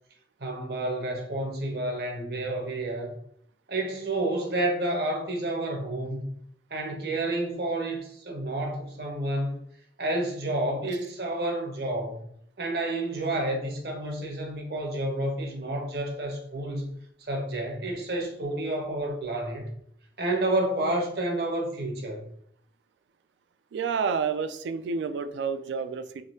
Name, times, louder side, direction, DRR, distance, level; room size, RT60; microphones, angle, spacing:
voice 1, 0.4-3.1 3.7-6.4 6.7-9.6 10.0-12.2 12.6-19.7 20.2-22.3, right 1 dB, 60° right, 1 dB, 0.8 m, -30 dB
voice 2, 23.7-26.2, right 5 dB, 85° right, 10 dB, 0.3 m, -29 dB
3.6 x 2.7 x 2.7 m, 0.68 s
head